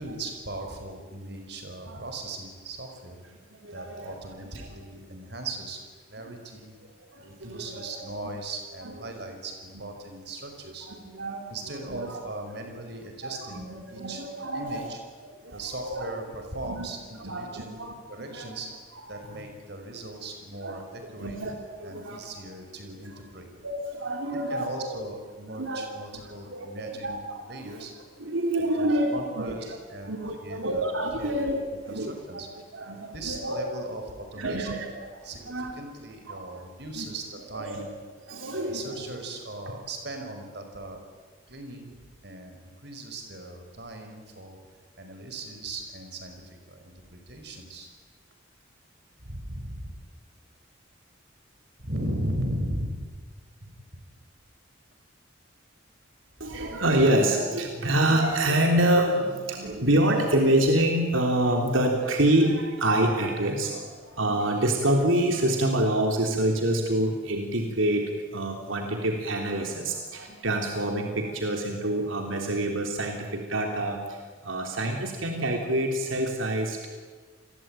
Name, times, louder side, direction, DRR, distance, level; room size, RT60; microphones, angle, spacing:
voice 1, 0.0-3.2 3.7-5.8 6.1-6.7 7.2-10.9 11.5-14.2 14.5-15.0 15.5-17.8 18.1-18.7 19.1-21.4 21.8-23.5 24.5-27.9 28.6-30.8 31.2-31.5 31.9-32.5 33.1-34.8 35.2-37.9 38.6-41.0 41.5-41.9 42.2-44.6 45.0-47.9 49.2-49.9 51.8-53.1 53.7-54.0 56.4-56.7, right 1 dB, 55° right, 5 dB, 5.6 m, -38 dB
voice 2, 1.7-2.0 3.5-4.1 4.5-4.7 6.2-6.3 7.1-8.2 10.8-11.5 11.9-12.2 13.2-14.9 15.2-16.1 16.6-16.9 17.2-18.6 19.1-19.4 20.6-20.8 21.2-22.2 23.0-23.1 23.6-24.7 25.5-25.9 26.1-26.2 26.5-27.7 28.2-29.5 30.0-31.6 31.8-32.4 32.7-33.7 34.4-34.9 35.5-35.7 36.3-36.6 37.0-37.1 37.5-37.8 38.3-39.0 56.4-76.9, right 1 dB, 85° right, 2 dB, 3.5 m, -27 dB
29.5 x 22.0 x 9.2 m, 1.4 s
head